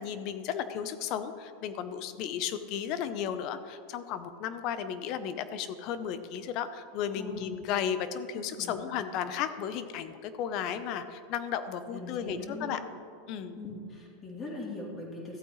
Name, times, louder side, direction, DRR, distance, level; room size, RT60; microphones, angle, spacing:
voice 1, 0.0-12.8 13.3-13.6, left 8 dB, 50° left, 11 dB, 0.7 m, -34 dB
voice 2, 7.2-7.5 8.3-9.0 11.9-12.8 13.6-15.4, left 2 dB, 25° left, -2 dB, 2.9 m, -41 dB
14.0 x 8.5 x 3.2 m, 2.3 s
supercardioid pair, 120°, 0 cm